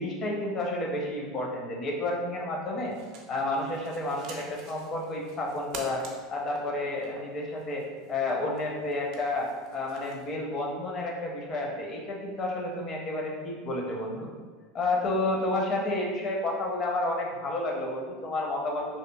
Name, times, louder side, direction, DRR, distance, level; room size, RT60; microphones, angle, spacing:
voice 1, 0.0-2.9 3.3-6.0 6.3-14.3 14.7-19.0, left 2 dB, 40° left, -1 dB, 0.6 m, -31 dB
sound 1, 2.8-10.3, right 4 dB, 60° right, 0.4 m, -48 dB
2.8 x 2.4 x 2.2 m, 1.5 s
supercardioid pair, 100°, 0 cm